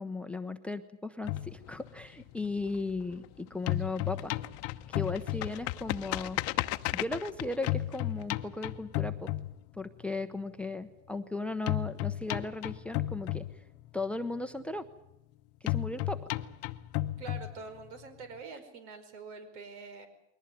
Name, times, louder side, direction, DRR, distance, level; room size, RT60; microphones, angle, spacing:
voice 1, 0.0-4.3 4.9-6.4 6.9-9.3 9.8-13.4 13.9-14.9 15.6-16.2, left 3 dB, 5° left, 12 dB, 0.8 m, -36 dB
sound 1, 1.2-3.3 3.5-10.0 11.7-14.0 15.7-18.0, left 16 dB, 45° left, 0.9 m, -34 dB
voice 2, 17.2-20.1, right 4 dB, 75° right, 10 dB, 5.0 m, -45 dB
22.0 x 19.0 x 9.5 m, 0.82 s
supercardioid pair, 135°, 34 cm